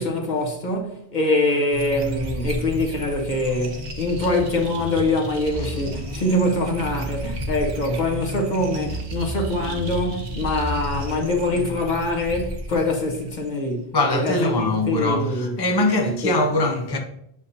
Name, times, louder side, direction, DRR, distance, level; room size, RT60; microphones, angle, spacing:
voice 1, 0.0-15.5 16.2-16.3, left 2 dB, 50° left, 1.2 m, -24 dB
sound 1, 1.7-13.7, equal, 70° right, 1.3 m, -32 dB
voice 2, 13.9-17.0, left 2 dB, 30° left, 0.5 m, -22 dB
6.7 x 5.1 x 2.7 m
omnidirectional pair, 1.0 m